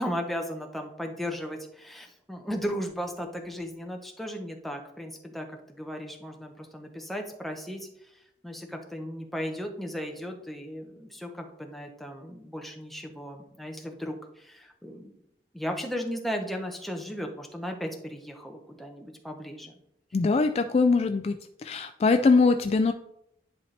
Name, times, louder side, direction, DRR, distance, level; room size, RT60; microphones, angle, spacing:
voice 1, 0.0-15.1 15.5-19.8, equal, ahead, 2 dB, 0.8 m, -36 dB
voice 2, 20.1-21.3 21.6-22.9, left 4 dB, 35° left, 8 dB, 0.3 m, -22 dB
10.0 x 4.1 x 3.3 m, 0.79 s
head